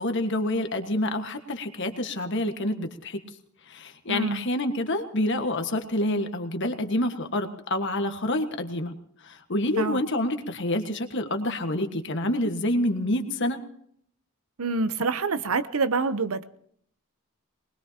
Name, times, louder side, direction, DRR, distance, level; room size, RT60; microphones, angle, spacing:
voice 1, 0.0-3.2 3.7-8.9 9.2-13.6, left 1 dB, 55° left, 6 dB, 1.5 m, -27 dB
voice 2, 4.1-4.4 9.8-10.0 14.6-16.4, right 3 dB, 75° right, 13 dB, 0.8 m, -26 dB
23.5 x 20.5 x 2.9 m, 0.66 s
head